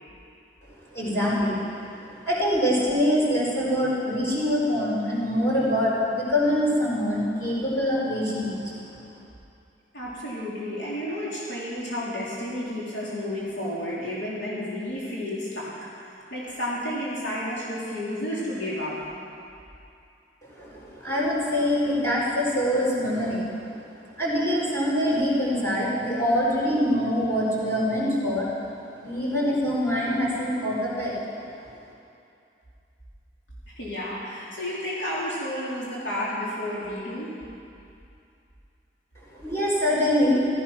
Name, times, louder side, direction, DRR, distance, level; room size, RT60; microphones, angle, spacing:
voice 1, 0.9-1.6 2.0-8.7 20.5-23.8 24.2-28.5 29.0-31.1 39.3-40.4, equal, 15° left, -7 dB, 4.3 m, -24 dB
voice 2, 9.9-15.7 16.0-19.0 33.7-37.3, left 1 dB, 85° left, -7 dB, 3.6 m, -31 dB
15.5 x 13.5 x 6.0 m, 2.6 s
head